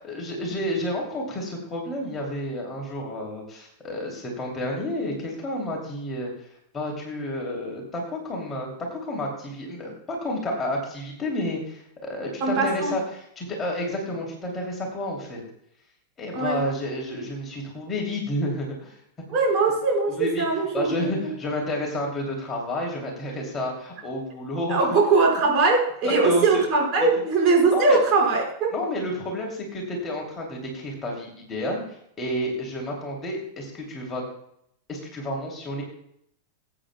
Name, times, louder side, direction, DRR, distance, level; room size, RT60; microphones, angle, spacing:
voice 1, 0.0-6.3 6.7-15.4 16.2-19.0 20.1-20.4 20.7-24.9 26.2-26.6 27.7-28.0 28.7-34.2 34.9-35.8, left 1 dB, 20° left, -1 dB, 2.9 m, -30 dB
voice 2, 12.4-12.9 16.3-16.6 19.3-21.3 24.7-28.7, right 3 dB, 35° right, -2 dB, 5.0 m, -21 dB
20.5 x 8.9 x 2.3 m, 0.71 s
figure-of-eight pair, 90°, 0 cm